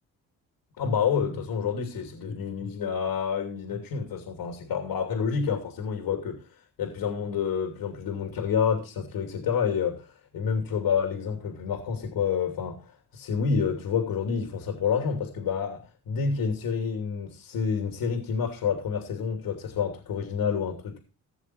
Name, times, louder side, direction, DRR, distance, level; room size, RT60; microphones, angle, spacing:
voice 1, 0.8-6.4 6.8-21.0, left 6 dB, 70° left, 3.0 m, -28 dB
16.5 x 7.0 x 4.6 m
supercardioid pair, 75°, 38 cm